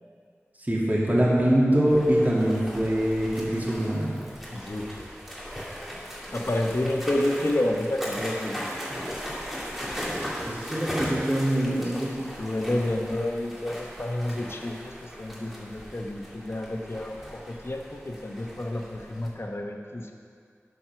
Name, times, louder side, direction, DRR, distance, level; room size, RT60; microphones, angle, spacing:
voice 1, 0.7-4.1 10.5-12.2, right 1 dB, 35° right, -6 dB, 2.3 m, -23 dB
sound 1, 1.9-19.3, equal, ahead, 2.5 m, -38 dB
voice 2, 4.5-5.1 6.3-8.7 12.2-20.1, left 1 dB, 55° left, 2 dB, 1.0 m, -30 dB
12.0 x 4.6 x 5.9 m, 2.3 s
wide cardioid pair, 40°, 5 cm